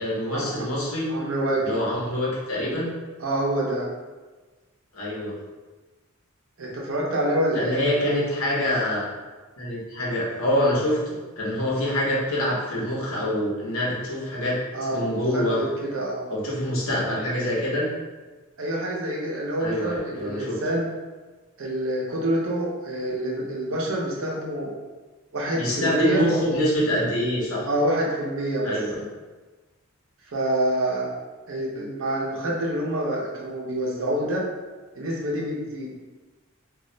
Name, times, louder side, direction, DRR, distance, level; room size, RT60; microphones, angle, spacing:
voice 1, 0.0-1.1 1.6-2.9 4.9-5.3 7.5-9.1 9.6-14.6 14.9-15.6 16.3-17.9 19.6-20.6 25.5-27.7 28.6-28.9, left 1 dB, 80° left, -5 dB, 0.9 m, -25 dB
voice 2, 1.1-1.8 3.2-3.9 6.6-7.8 14.7-16.3 18.6-20.9 21.6-24.7 25.3-26.2 27.6-28.8 30.2-31.1 31.5-34.5 35.0-35.9, right 1 dB, 65° right, -3 dB, 0.7 m, -27 dB
2.4 x 2.1 x 3.7 m, 1.3 s
head